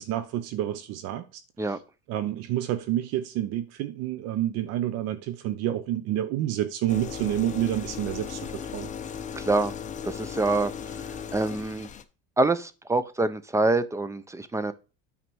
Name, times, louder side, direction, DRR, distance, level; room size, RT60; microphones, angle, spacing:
voice 1, 0.0-1.4 1.7-1.8 2.1-8.9, right 12 dB, 55° right, 0.8 m, -29 dB
sound 1, 6.9-12.0, left 7 dB, 25° left, 0.8 m, -37 dB
voice 2, 9.3-9.7 10.0-10.7 11.0-11.9 12.4-14.7, right 2 dB, 10° right, 0.5 m, -26 dB
9.2 x 4.1 x 6.2 m
supercardioid pair, 130°, 31 cm